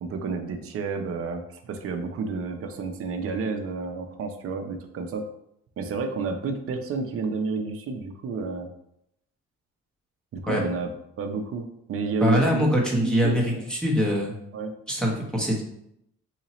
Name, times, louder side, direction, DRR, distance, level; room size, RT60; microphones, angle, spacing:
voice 1, 0.0-5.2 5.8-8.7 10.3-10.9 11.2-13.6 14.5-14.7, right 4 dB, 50° right, 5 dB, 0.6 m, -30 dB
voice 2, 12.2-14.3 14.9-15.6, equal, 5° left, -3 dB, 0.9 m, -23 dB
2.9 x 2.7 x 4.1 m, 0.77 s
cardioid pair, 90°, 30 cm